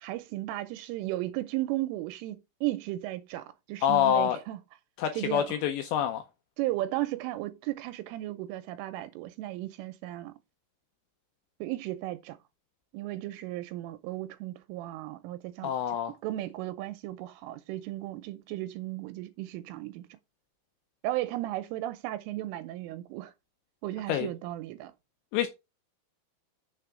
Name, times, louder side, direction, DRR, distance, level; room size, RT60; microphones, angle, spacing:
voice 1, 0.0-4.6 5.1-5.5 6.6-10.3 11.6-12.4 12.9-20.1 21.0-23.3 23.8-24.9, right 16 dB, 85° right, 3.2 m, -35 dB
voice 2, 3.8-4.4 5.0-6.2 15.6-16.2 24.1-24.3 25.3-25.5, left 10 dB, 80° left, 2.7 m, -26 dB
7.1 x 6.7 x 5.0 m
omnidirectional pair, 5.8 m